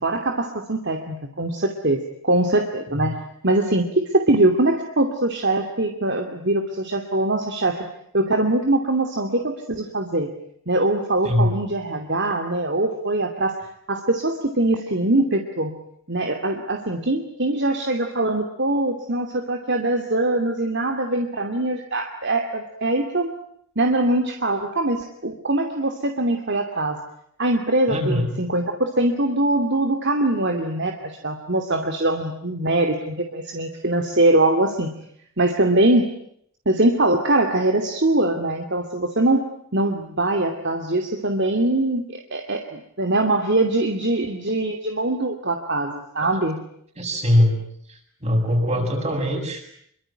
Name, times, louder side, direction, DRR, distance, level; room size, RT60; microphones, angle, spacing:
voice 1, 0.0-3.2 3.4-7.8 8.1-10.3 10.7-13.5 13.9-15.7 16.1-23.3 23.8-27.0 27.4-30.9 31.2-34.9 35.4-36.1 36.7-46.6, right 2 dB, 50° right, 4 dB, 2.6 m, -22 dB
voice 2, 27.9-28.3 47.0-47.6 48.2-49.6, left 1 dB, 30° right, 3 dB, 7.5 m, -21 dB
27.0 x 24.0 x 9.0 m, 0.70 s
head